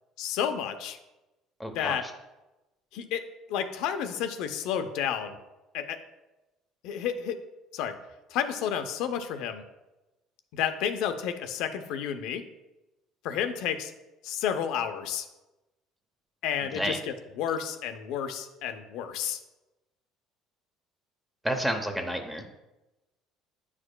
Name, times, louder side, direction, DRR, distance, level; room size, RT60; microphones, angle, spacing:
voice 1, 0.2-1.0 1.7-2.0 2.9-3.2 3.5-5.4 5.7-6.0 6.8-7.4 7.7-7.9 8.3-9.6 10.5-12.4 13.2-13.9 14.2-15.3 16.4-19.4, left 8 dB, 75° left, 8 dB, 0.6 m, -31 dB
voice 2, 1.6-2.0 16.6-17.0 21.4-22.5, equal, 5° right, 4 dB, 0.8 m, -30 dB
9.5 x 4.8 x 2.2 m, 1.0 s
cardioid pair, 115°, 0 cm